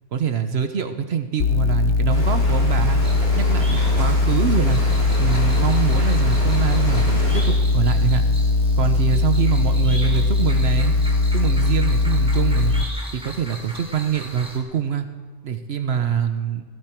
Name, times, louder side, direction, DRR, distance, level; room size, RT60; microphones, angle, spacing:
voice 1, 0.1-3.0 3.4-4.8 5.2-8.2 8.8-10.9 11.3-12.7 13.1-15.1 15.4-16.6, right 7 dB, 60° right, 8 dB, 1.0 m, -24 dB
sound 1, 1.4-12.8, left 3 dB, 70° left, 0.9 m, -19 dB
sound 2, 2.1-7.4, left 1 dB, 30° right, 6.0 m, -30 dB
sound 3, 3.0-14.6, right 1 dB, 5° right, 2.9 m, -39 dB
17.5 x 15.5 x 4.5 m, 1.5 s
omnidirectional pair, 1.3 m